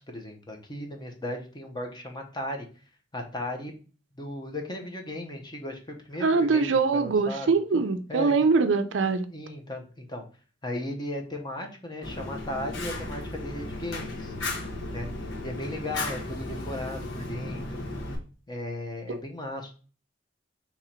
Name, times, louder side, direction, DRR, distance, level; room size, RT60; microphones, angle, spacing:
voice 1, 0.1-2.7 3.1-3.7 4.1-7.5 8.1-8.3 9.3-10.2 10.6-14.3 14.9-15.1 15.4-17.9 18.5-19.7, left 1 dB, 25° left, 0.8 m, -36 dB
voice 2, 6.2-9.2 19.1-19.2, right 4 dB, 75° right, 0.5 m, -23 dB
Fire, 12.0-18.2, left 2 dB, 85° left, 1.1 m, -35 dB
3.8 x 3.0 x 4.3 m
head